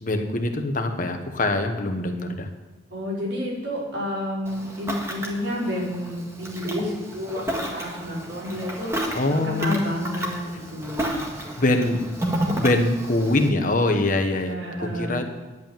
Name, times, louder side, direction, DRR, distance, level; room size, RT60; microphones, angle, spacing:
voice 1, 0.0-2.5 9.1-9.8 11.6-12.1 12.6-15.2, left 2 dB, 45° left, 6 dB, 1.2 m, -23 dB
voice 2, 2.9-11.2 14.4-15.2, left 1 dB, 70° right, -5 dB, 5.1 m, -30 dB
Ocean, 4.5-13.5, right 1 dB, 15° right, 1.8 m, -31 dB
11.0 x 8.3 x 9.1 m, 1.2 s
head